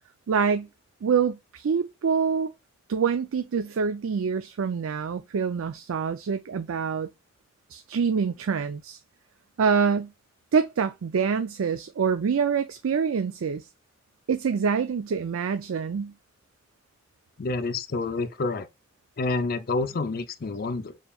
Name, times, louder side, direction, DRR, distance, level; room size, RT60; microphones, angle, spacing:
voice 1, 0.3-0.7 1.0-2.5 2.9-7.1 7.7-9.0 9.6-10.1 10.5-13.7 14.3-16.1, right 6 dB, 80° right, 0.4 m, -26 dB
voice 2, 17.4-18.7 19.2-21.0, left 3 dB, 45° left, 0.5 m, -28 dB
6.8 x 2.9 x 2.3 m
head